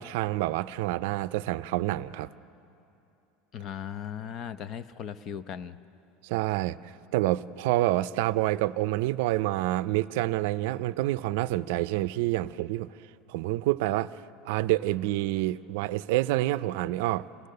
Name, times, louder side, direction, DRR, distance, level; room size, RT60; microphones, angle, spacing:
voice 1, 0.0-2.3 6.2-12.9 13.3-14.1 14.5-17.3, right 16 dB, 70° right, 16 dB, 0.4 m, -28 dB
voice 2, 3.5-5.8, left 8 dB, 35° left, 13 dB, 0.6 m, -37 dB
27.5 x 17.0 x 6.7 m, 2.9 s
supercardioid pair, 160°, 0 cm